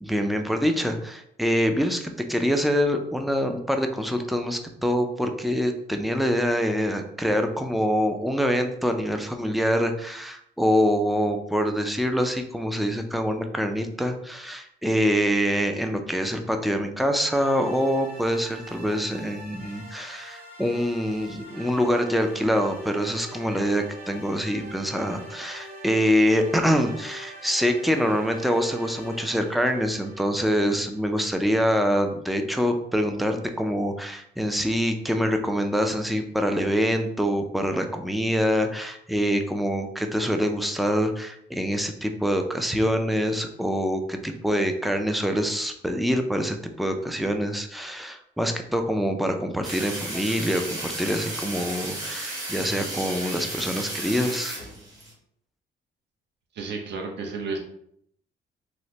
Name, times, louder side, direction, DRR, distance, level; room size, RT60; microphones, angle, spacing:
voice 1, 0.0-54.5, equal, ahead, 5 dB, 0.3 m, -25 dB
sound 1, 17.3-31.5, equal, 45° right, 1.2 m, -44 dB
sound 2, 49.6-55.1, right 2 dB, 20° right, 1.1 m, -34 dB
voice 2, 56.5-57.6, right 4 dB, 60° right, 2 dB, 0.7 m, -32 dB
3.0 x 2.1 x 2.8 m, 0.72 s
cardioid pair, 90°, 20 cm